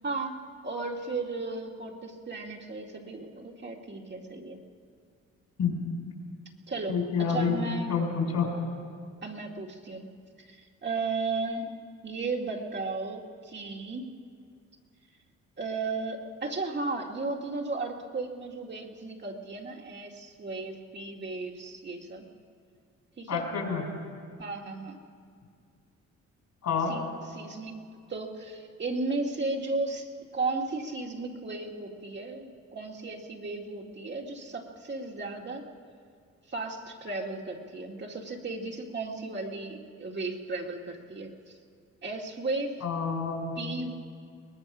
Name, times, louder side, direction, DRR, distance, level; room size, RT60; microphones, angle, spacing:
voice 1, 0.0-0.4 0.6-4.6 6.7-7.9 9.2-10.1 10.4-11.7 12.0-14.1 15.6-22.3 23.2-23.5 24.4-25.0 26.9-35.6 36.5-41.5 42.0-42.7 43.6-43.9, right 3 dB, 35° right, 0 dB, 2.3 m, -35 dB
voice 2, 6.9-7.6 7.9-8.5 23.3-23.9 26.6-26.9 42.8-43.6, left 6 dB, 65° left, 2 dB, 5.0 m, -28 dB
22.5 x 19.0 x 6.2 m, 2.2 s
cardioid pair, 90°, 30 cm